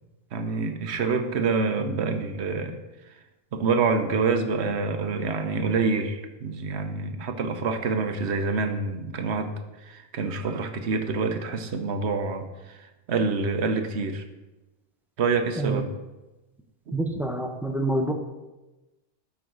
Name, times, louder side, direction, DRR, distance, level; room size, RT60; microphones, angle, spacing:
voice 1, 0.3-2.8 3.5-9.5 9.8-12.8 13.1-14.2 15.2-15.9, right 4 dB, 65° right, 7 dB, 1.1 m, -26 dB
voice 2, 16.9-18.1, right 1 dB, ahead, 3 dB, 0.8 m, -27 dB
12.5 x 5.8 x 3.9 m, 1.1 s
omnidirectional pair, 1.2 m